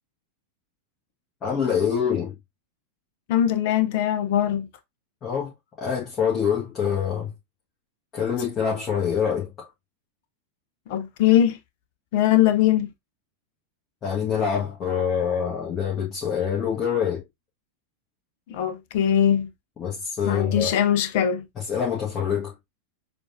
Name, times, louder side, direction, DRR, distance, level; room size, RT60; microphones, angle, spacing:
voice 1, 1.4-2.3 5.2-5.5 5.8-7.3 8.1-9.7 14.0-17.2 19.8-20.7 21.5-22.5, left 7 dB, 25° left, 1.4 m, -25 dB
voice 2, 3.3-4.7 10.9-11.6 12.1-12.9 18.5-19.5 20.2-21.4, left 10 dB, 50° left, 0.7 m, -21 dB
6.8 x 2.6 x 2.6 m
figure-of-eight pair, 90°, 0 cm